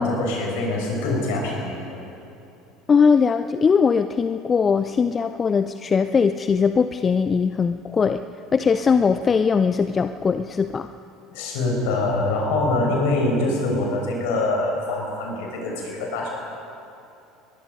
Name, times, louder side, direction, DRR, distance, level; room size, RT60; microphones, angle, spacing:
voice 1, 0.0-2.0 11.3-16.3, left 2 dB, 60° left, -1 dB, 6.5 m, -24 dB
voice 2, 2.9-8.2 8.5-10.9, left 5 dB, 25° left, 11 dB, 0.6 m, -20 dB
24.0 x 22.0 x 5.4 m, 2.7 s
figure-of-eight pair, 70°, 0 cm